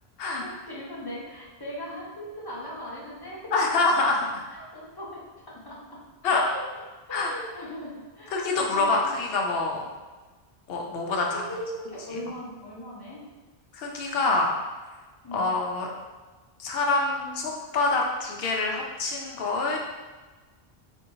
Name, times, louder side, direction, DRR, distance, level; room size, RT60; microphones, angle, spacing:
voice 1, 0.4-3.9 4.2-6.0 6.3-6.6 7.1-9.0 11.3-13.2 15.2-15.6, equal, 25° left, -5 dB, 0.6 m, -39 dB
voice 2, 3.5-4.2 6.2-6.5 7.1-7.3 8.3-9.8 10.7-11.4 13.7-14.5 15.3-15.9 16.6-19.8, left 3 dB, 70° left, 0 dB, 0.8 m, -25 dB
3.5 x 2.8 x 2.7 m, 1.3 s
omnidirectional pair, 1.1 m